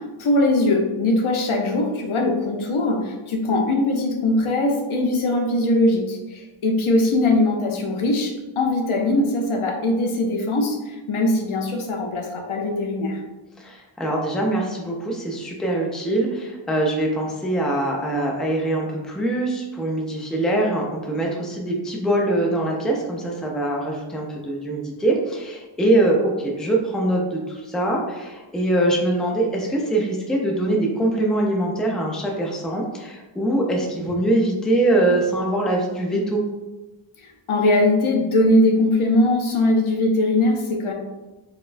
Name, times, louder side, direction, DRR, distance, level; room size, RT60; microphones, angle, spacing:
voice 1, 0.2-10.8 11.1-13.2 37.5-40.9, left 2 dB, 70° left, 2 dB, 0.7 m, -21 dB
voice 2, 13.6-36.4, right 1 dB, ahead, -1 dB, 0.4 m, -23 dB
4.1 x 2.2 x 2.5 m, 1.1 s
wide cardioid pair, 115°, 50 cm